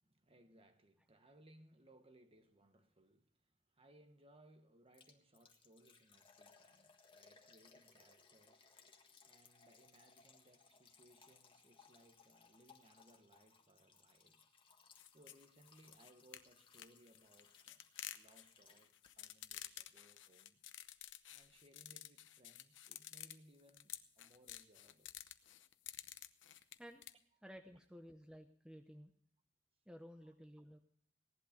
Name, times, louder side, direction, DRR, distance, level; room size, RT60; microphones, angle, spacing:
voice 1, 0.0-14.5 15.1-17.9 18.1-20.6 21.3-25.2, right 1 dB, 30° right, 1.4 m, -67 dB
Liquid, 4.9-19.4 19.6-19.7 20.2-20.3, left 5 dB, 30° left, 1.6 m, -66 dB
sound 1, 14.9-27.1, left 12 dB, 70° left, 0.8 m, -52 dB
voice 2, 27.4-29.1 29.9-30.8, equal, 5° right, 0.8 m, -55 dB
17.5 x 11.5 x 5.2 m
head